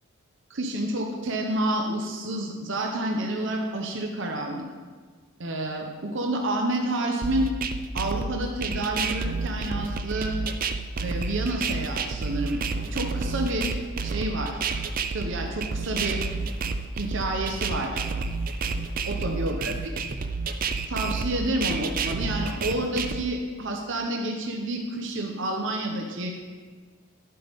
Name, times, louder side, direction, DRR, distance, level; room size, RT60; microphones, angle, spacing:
voice 1, 0.5-4.6 5.4-7.5 7.9-10.4 11.0-13.7 14.0-14.6 15.1-16.2 16.9-18.2 19.1-19.9 20.9-26.3, right 1 dB, 60° right, 1 dB, 0.8 m, -29 dB
sound 1, 7.2-23.2, right 4 dB, 45° right, 0.4 m, -30 dB
10.5 x 7.8 x 3.5 m, 1.5 s
head